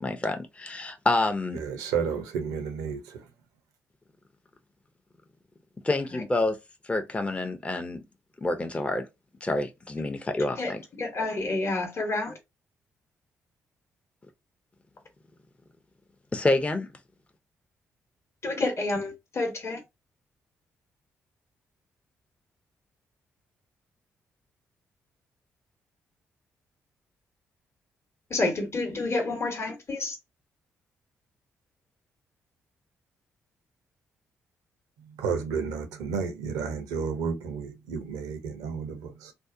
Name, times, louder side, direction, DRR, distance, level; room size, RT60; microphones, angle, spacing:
voice 1, 0.0-1.6 5.8-6.6 6.8-8.0 8.4-9.1 9.4-10.8 16.3-16.9, left 2 dB, 20° left, 0.5 m, -27 dB
voice 2, 1.5-3.2 35.2-39.3, right 6 dB, 80° right, 0.5 m, -32 dB
voice 3, 11.0-12.3 18.4-19.8 28.3-30.2, left 2 dB, 45° left, 0.9 m, -29 dB
2.6 x 2.0 x 2.4 m
hypercardioid pair, 45°, 6 cm